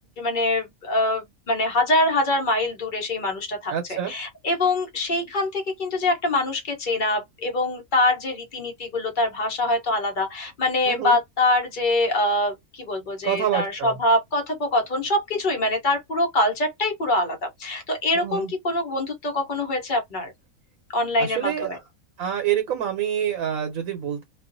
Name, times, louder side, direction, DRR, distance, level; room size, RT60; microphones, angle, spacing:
voice 1, 0.2-20.3 20.9-21.8, left 2 dB, 45° left, 0.8 m, -24 dB
voice 2, 3.7-4.1 10.8-11.2 13.2-14.0 18.1-18.5 21.2-21.8 22.2-24.2, right 10 dB, 85° right, 1.1 m, -27 dB
2.4 x 2.3 x 2.5 m
omnidirectional pair, 1.5 m